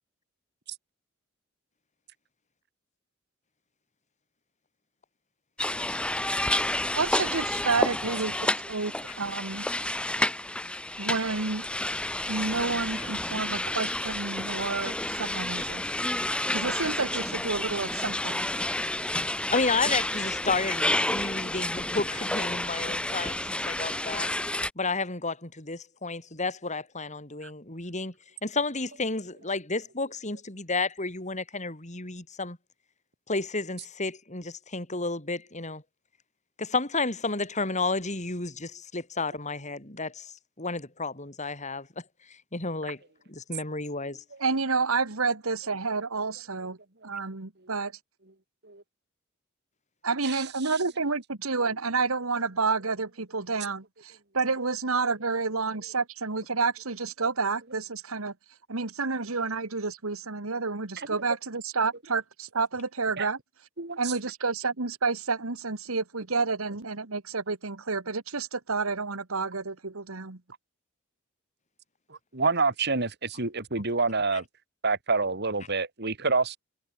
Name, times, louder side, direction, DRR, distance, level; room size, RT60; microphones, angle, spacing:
sound 1, 5.6-24.7, left 1 dB, 5° left, 1.0 m, -30 dB
voice 1, 6.9-9.6 11.0-11.6 12.3-15.8 16.5-18.5 44.4-46.8 47.0-47.9 50.0-58.3 58.7-63.4 64.0-70.4, right 4 dB, 85° right, 1.7 m, -29 dB
voice 2, 19.5-23.4 23.7-24.3 24.8-28.1 28.4-32.6 33.3-35.8 36.6-40.3 40.6-41.9 42.5-43.0 43.3-44.2, left 3 dB, 35° left, 5.2 m, -31 dB
voice 3, 50.2-50.8 61.0-61.1 63.2-63.3 63.8-64.1 72.1-74.4 74.8-76.6, right 4 dB, 50° right, 3.5 m, -28 dB
head